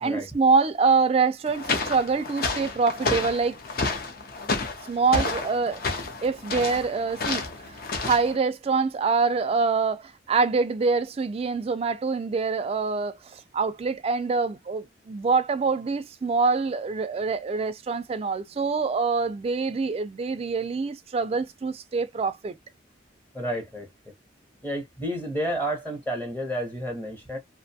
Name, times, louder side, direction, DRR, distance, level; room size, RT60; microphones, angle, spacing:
voice 1, 0.0-3.6 4.8-5.8 6.2-22.5, right 4 dB, 35° right, 0.3 m, -25 dB
sound 1, 1.5-8.4, left 3 dB, 55° left, 0.6 m, -30 dB
voice 2, 23.3-23.9 24.6-27.4, equal, 10° left, 0.7 m, -30 dB
2.5 x 2.1 x 2.7 m
head